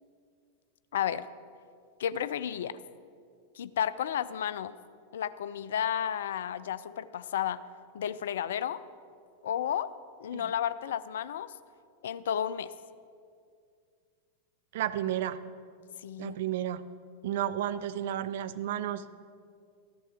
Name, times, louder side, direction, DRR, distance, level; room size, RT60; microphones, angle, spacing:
voice 1, 0.9-1.2 2.0-2.8 3.6-4.7 5.1-7.6 7.9-8.8 9.4-9.9 10.2-11.5 12.0-12.7 16.0-16.4, left 9 dB, 60° left, 15 dB, 0.4 m, -32 dB
voice 2, 14.7-15.4 16.2-16.9 17.2-19.3, right 11 dB, 55° right, 12 dB, 0.5 m, -32 dB
13.5 x 11.0 x 4.4 m, 2.2 s
figure-of-eight pair, 90°, 0 cm